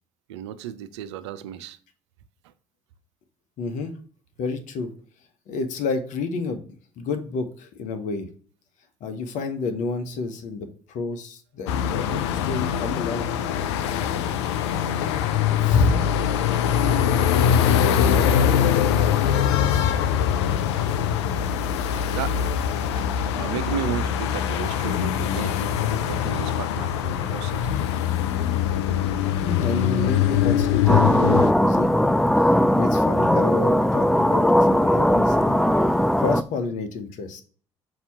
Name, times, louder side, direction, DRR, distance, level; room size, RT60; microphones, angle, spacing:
voice 1, 0.3-1.8 2.4-2.5 21.9-22.5 22.8-27.8 28.4-28.5, right 10 dB, 85° right, 0.5 m, -34 dB
voice 2, 3.6-3.9 4.4-4.9 5.5-8.3 9.0-13.3 15.6-16.0 17.3-17.8 29.4-32.0 32.7-35.6 36.2-37.4, left 3 dB, 65° left, 1.0 m, -29 dB
sound 1, 11.7-31.5, left 9 dB, 85° left, 0.4 m, -23 dB
sound 2, 30.9-36.4, equal, 5° left, 0.3 m, -19 dB
5.9 x 2.9 x 5.5 m
hypercardioid pair, 55°, 14 cm